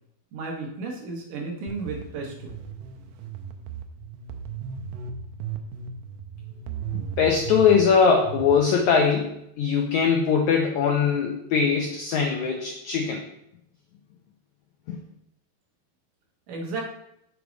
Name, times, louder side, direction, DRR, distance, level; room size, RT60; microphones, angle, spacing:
voice 1, 0.3-2.5 16.5-16.8, right 3 dB, 65° right, -1 dB, 2.6 m, -33 dB
sound 1, 1.7-8.5, right 7 dB, 85° right, 2.5 m, -36 dB
voice 2, 7.1-13.2, left 6 dB, 85° left, 2 dB, 1.6 m, -21 dB
6.7 x 4.8 x 5.0 m, 0.78 s
omnidirectional pair, 4.4 m